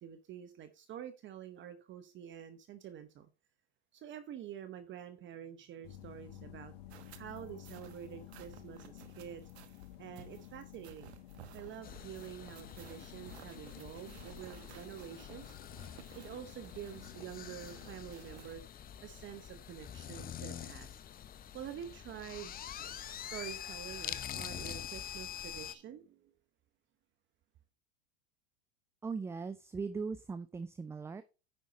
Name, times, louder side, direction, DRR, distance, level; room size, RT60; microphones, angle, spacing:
voice 1, 0.0-3.3 3.9-6.7 7.2-9.4 10.0-11.1 11.5-15.4 16.2-18.7 19.0-21.0 21.5-22.6 23.2-26.3, right 10 dB, 35° right, 0.9 m, -47 dB
sound 1, 5.8-18.1, left 13 dB, 65° left, 1.5 m, -53 dB
sound 2, 6.9-18.6, right 12 dB, 75° right, 1.2 m, -57 dB
sound 3, 11.8-25.7, left 10 dB, 25° left, 0.7 m, -46 dB
voice 2, 29.0-31.2, right 4 dB, 10° right, 0.3 m, -39 dB
9.6 x 5.5 x 4.0 m
hypercardioid pair, 95°, 33 cm